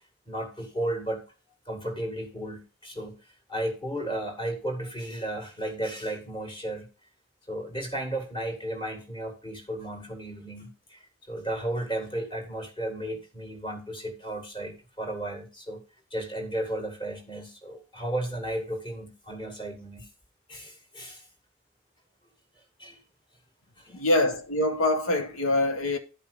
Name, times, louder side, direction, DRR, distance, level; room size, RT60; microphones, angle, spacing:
voice 1, 0.3-1.2 1.7-6.9 7.5-15.8 16.1-20.1 20.5-21.3 22.8-23.0 23.8-24.0, right 1 dB, 20° left, 2.0 m, -34 dB
voice 2, 23.9-26.0, left 1 dB, 80° left, 1.2 m, -24 dB
11.5 x 5.4 x 5.0 m
head